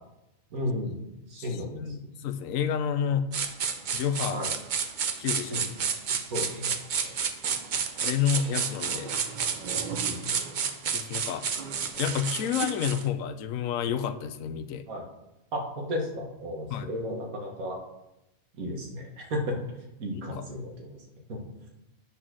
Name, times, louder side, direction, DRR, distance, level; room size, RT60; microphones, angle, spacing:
voice 1, 0.5-1.0 1.3-2.1 4.3-4.5 5.5-5.7 6.1-6.8 7.7-7.9 10.0-10.4 14.9-15.0 15.5-17.8 18.6-21.0 21.3-21.4, left 1 dB, 85° right, 2 dB, 1.8 m, -34 dB
voice 2, 1.4-3.3 3.9-4.4 5.2-5.6 8.0-9.2 10.9-11.5 12.0-14.9 16.7-16.9 20.1-20.5, left 8 dB, 75° left, 11 dB, 1.0 m, -30 dB
sound 1, 3.3-13.1, right 6 dB, 50° right, 0.6 m, -31 dB
9.2 x 4.2 x 6.1 m, 0.92 s
omnidirectional pair, 1.5 m